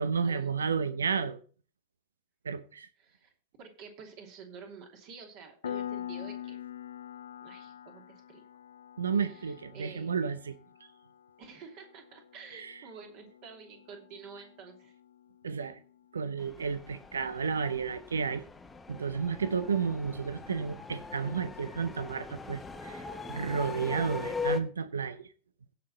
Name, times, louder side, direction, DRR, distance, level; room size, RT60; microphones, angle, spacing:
voice 1, 0.0-1.4 2.4-2.9 9.0-10.5 12.5-12.8 15.4-15.8 16.1-18.4 18.9-25.3, right 6 dB, 70° right, 0.8 m, -32 dB
voice 2, 3.0-3.3 3.6-6.6 7.4-8.4 9.2-10.1 11.4-14.9, right 5 dB, 45° right, 2.9 m, -49 dB
Piano, 5.6-16.0, left 10 dB, 65° left, 0.4 m, -45 dB
sound 1, 16.4-24.6, left 5 dB, 10° left, 1.2 m, -40 dB
16.5 x 5.7 x 4.2 m
figure-of-eight pair, 90°, 0 cm